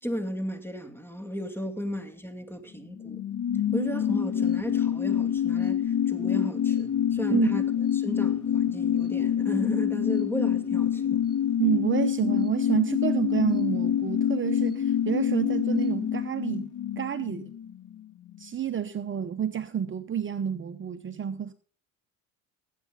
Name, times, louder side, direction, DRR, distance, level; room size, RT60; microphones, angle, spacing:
voice 1, 0.0-3.2 3.7-7.7 7.9-11.2, equal, 5° left, 2.7 m, -34 dB
sound 1, 2.8-18.0 18.3-18.4, left 9 dB, 60° left, 2.5 m, -26 dB
voice 2, 7.3-7.6 11.6-16.7 17.0-17.5 18.4-21.5, right 9 dB, 35° right, 0.9 m, -29 dB
19.5 x 8.4 x 4.0 m
supercardioid pair, 85°, 35 cm